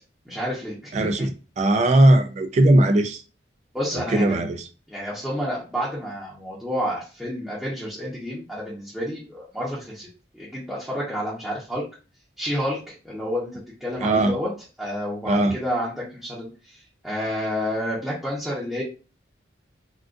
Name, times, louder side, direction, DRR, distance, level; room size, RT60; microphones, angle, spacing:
voice 1, 0.3-1.3 3.7-4.5 4.9-10.1 10.3-11.8 12.4-14.5 14.8-18.8, equal, ahead, 0.7 m, -30 dB
voice 2, 0.9-1.3 1.6-3.2 4.1-4.6 14.0-14.3 15.3-15.5, right 1 dB, 35° right, 0.3 m, -18 dB
3.6 x 2.4 x 2.5 m
head